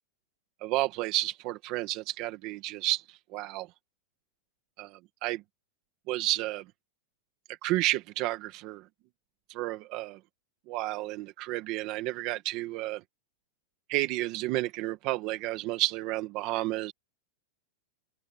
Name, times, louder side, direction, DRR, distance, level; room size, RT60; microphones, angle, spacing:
voice 1, 0.6-3.7 4.8-5.4 6.1-6.6 7.6-8.8 9.5-10.2 10.7-13.0 13.9-16.9, right 17 dB, 35° right, 1.5 m, -31 dB
supercardioid pair, 170°, 0 cm